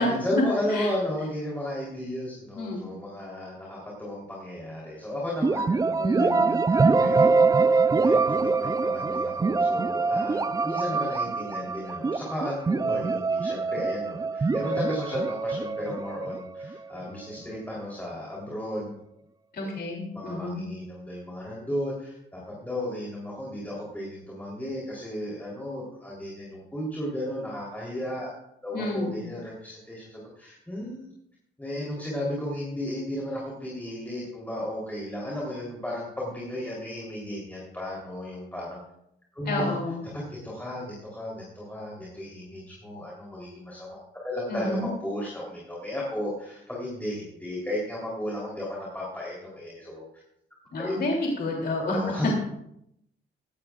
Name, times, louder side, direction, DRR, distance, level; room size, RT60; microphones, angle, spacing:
voice 1, 0.0-19.0 19.6-19.7 20.1-28.3 28.6-31.0 31.6-38.8 39.3-39.8 40.1-50.1 50.8-51.0 51.9-52.3, left 1 dB, 10° left, -5 dB, 3.4 m, -34 dB
sound 1, 5.4-17.1, right 4 dB, 20° right, 0.4 m, -24 dB
voice 2, 6.0-6.5 19.5-20.6 28.7-29.2 39.5-40.0 44.5-44.9 50.7-52.1, left 2 dB, 50° left, -1 dB, 2.9 m, -29 dB
15.5 x 12.0 x 2.4 m, 0.77 s
cardioid pair, 90°, 20 cm